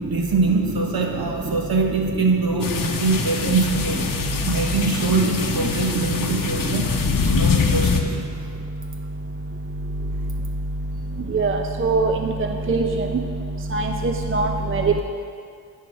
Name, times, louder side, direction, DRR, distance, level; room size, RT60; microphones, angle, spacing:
voice 1, 0.1-4.1 4.5-6.9 7.3-8.4, right 3 dB, 60° right, 2 dB, 1.2 m, -23 dB
sound 1, 2.6-8.0, left 5 dB, 50° left, 0.8 m, -24 dB
voice 2, 11.3-12.1 12.7-12.9 13.7-15.0, right 3 dB, 30° right, 4 dB, 0.5 m, -21 dB
9.5 x 4.7 x 5.8 m, 2.2 s
cardioid pair, 65°, 41 cm